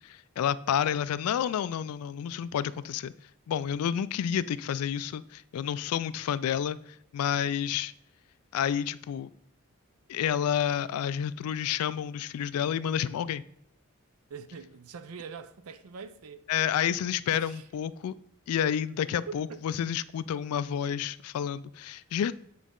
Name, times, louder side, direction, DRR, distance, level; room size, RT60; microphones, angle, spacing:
voice 1, 0.0-3.1 3.5-7.9 8.5-9.3 10.1-13.4 16.5-18.1 18.5-22.3, left 9 dB, 80° left, 0.3 m, -30 dB
voice 2, 14.3-16.5 17.3-17.7 19.3-19.6, right 5 dB, 80° right, 0.5 m, -43 dB
8.3 x 4.0 x 3.7 m
head